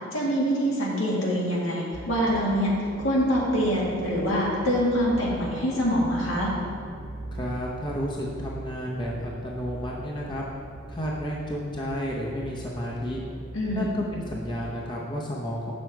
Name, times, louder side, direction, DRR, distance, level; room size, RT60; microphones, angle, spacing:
voice 1, 0.1-2.7 3.0-6.5 13.5-13.9, equal, 80° left, -4 dB, 2.0 m, -25 dB
sound 1, 1.9-14.9, right 1 dB, 55° right, 1.3 m, -41 dB
voice 2, 7.3-10.4 10.9-13.2 13.7-15.7, equal, 20° left, -3 dB, 0.7 m, -32 dB
7.5 x 6.4 x 4.6 m, 2.2 s
head